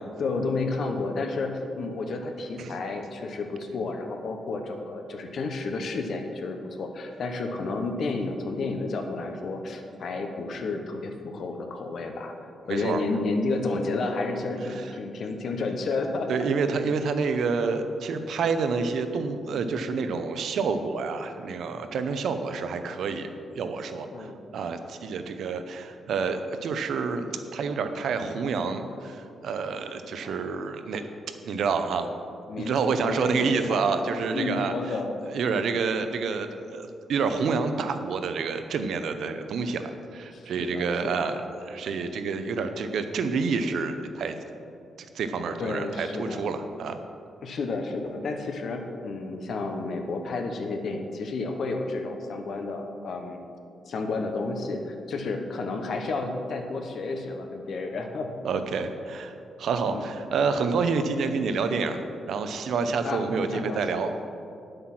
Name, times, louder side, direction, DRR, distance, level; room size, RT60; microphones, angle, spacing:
voice 1, 0.0-12.3 12.7-16.4 24.1-24.4 30.2-30.4 32.5-34.0 34.3-35.2 40.3-41.3 45.6-46.5 47.4-53.4 53.9-58.3 59.9-60.1 63.0-64.0, left 3 dB, 55° left, 4 dB, 1.0 m, -31 dB
voice 2, 12.7-13.0 14.7-14.8 16.3-23.3 23.5-31.0 31.4-32.1 32.6-34.7 35.3-44.4 45.1-47.0 58.4-59.3 59.6-62.0 62.3-64.1, right 5 dB, 65° right, 8 dB, 0.7 m, -28 dB
sound 1, 55.4-58.3, left 5 dB, 70° left, 1.7 m, -49 dB
9.5 x 7.8 x 6.0 m, 2.6 s
wide cardioid pair, 170°, 0 cm